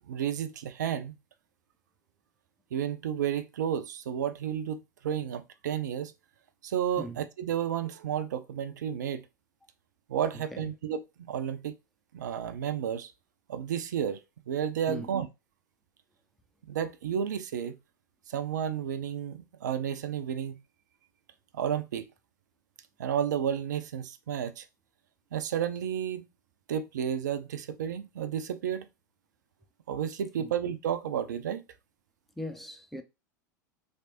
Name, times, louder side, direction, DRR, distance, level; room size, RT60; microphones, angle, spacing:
voice 1, 0.1-1.1 2.7-4.8 5.0-6.1 6.6-9.2 10.1-11.7 12.1-13.1 13.5-14.2 14.5-15.3 16.7-17.8 18.3-20.6 21.5-22.1 23.0-24.6 25.3-26.3 26.7-28.9 29.9-31.6, right 9 dB, 70° right, 0.5 m, -32 dB
voice 2, 10.3-10.7 14.9-15.1 30.4-30.5 32.4-33.0, equal, ahead, 0.7 m, -40 dB
3.2 x 3.2 x 2.8 m
figure-of-eight pair, 85°, 10 cm